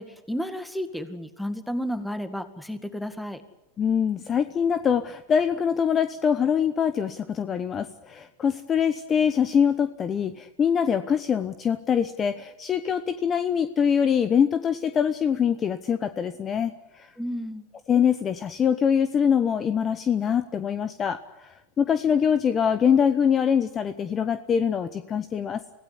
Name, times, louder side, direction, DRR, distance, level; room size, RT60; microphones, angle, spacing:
voice 1, 0.0-3.4 17.2-17.7, equal, ahead, 9 dB, 2.1 m, -32 dB
voice 2, 3.8-17.1 17.9-25.6, left 7 dB, 25° left, 11 dB, 1.0 m, -24 dB
25.0 x 17.0 x 9.6 m, 1.0 s
supercardioid pair, 135°, 0 cm